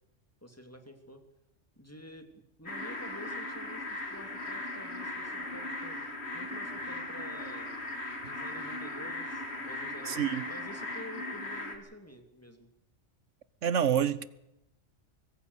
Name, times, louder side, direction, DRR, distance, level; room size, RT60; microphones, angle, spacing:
voice 1, 0.4-1.2 1.8-6.0 6.3-7.7 8.2-12.7, left 1 dB, 10° left, 7 dB, 2.9 m, -49 dB
sound 1, 2.7-11.8, left 2 dB, 55° left, 2.9 m, -38 dB
voice 2, 10.1-10.4 13.6-14.2, right 9 dB, 75° right, 17 dB, 1.4 m, -27 dB
23.5 x 15.0 x 8.2 m, 0.87 s
omnidirectional pair, 1.3 m